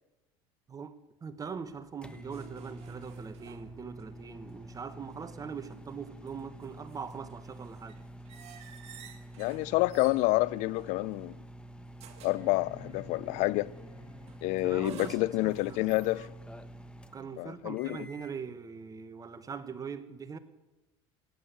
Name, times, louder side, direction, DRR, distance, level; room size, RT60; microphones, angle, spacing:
voice 1, 0.7-8.0 14.4-16.2 17.1-20.4, right 6 dB, 25° right, 1.2 m, -42 dB
sound 1, 1.5-18.4, right 1 dB, 5° left, 1.1 m, -48 dB
sound 2, 2.3-4.2 4.5-4.6 6.0-11.4 12.0-12.5 14.3-16.3, right 8 dB, 55° right, 2.2 m, -53 dB
voice 2, 9.4-11.4 12.2-13.7 14.4-16.3 17.4-18.0, left 20 dB, 65° left, 0.5 m, -28 dB
sound 3, 12.4-14.8 16.6-16.7, left 3 dB, 30° left, 6.2 m, -51 dB
17.0 x 9.9 x 8.1 m
supercardioid pair, 100°, 13 cm